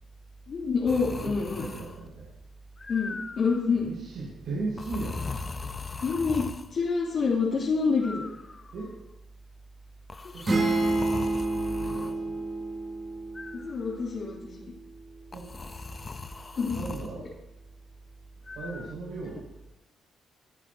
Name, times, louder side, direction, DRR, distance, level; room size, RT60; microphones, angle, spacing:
voice 1, 0.5-1.6 2.9-3.9 6.0-8.2 13.5-14.7 16.6-16.8, left 4 dB, 55° left, -7 dB, 2.5 m, -27 dB
sound 1, 0.9-2.1 2.8-3.7 4.8-6.7 8.0-8.9 10.1-12.1 13.3-14.1 15.3-17.1 18.5-18.9, left 4 dB, 30° left, 0.6 m, -39 dB
voice 2, 1.1-2.3 3.7-5.7 8.7-8.9 10.3-11.1 11.8-12.4 15.3-15.4 16.7-17.2 18.5-19.4, right 3 dB, 75° right, -6 dB, 5.0 m, -37 dB
sound 2, 10.4-14.2, right 2 dB, 35° right, 3.3 m, -29 dB
21.0 x 8.5 x 2.7 m, 0.96 s
cardioid pair, 90°, 0 cm